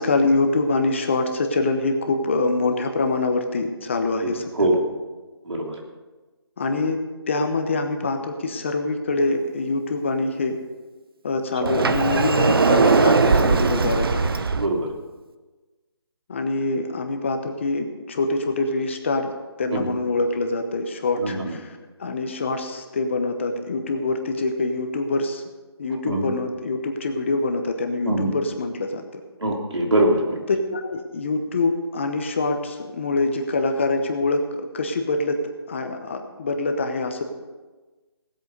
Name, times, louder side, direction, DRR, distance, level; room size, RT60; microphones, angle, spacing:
voice 1, 0.0-4.7 6.6-7.0 7.3-10.6 11.2-14.3 16.3-19.3 19.6-25.4 25.8-29.2 30.5-37.2, left 3 dB, 25° left, 6 dB, 1.0 m, -25 dB
Sliding door, 11.7-14.7, right 4 dB, 55° right, 0.8 m, -19 dB
voice 2, 21.2-21.5 26.0-26.3 28.0-28.3 29.4-30.4, right 1 dB, 85° right, 1 dB, 3.1 m, -22 dB
18.0 x 8.4 x 5.2 m, 1.3 s
hypercardioid pair, 170°, 14 cm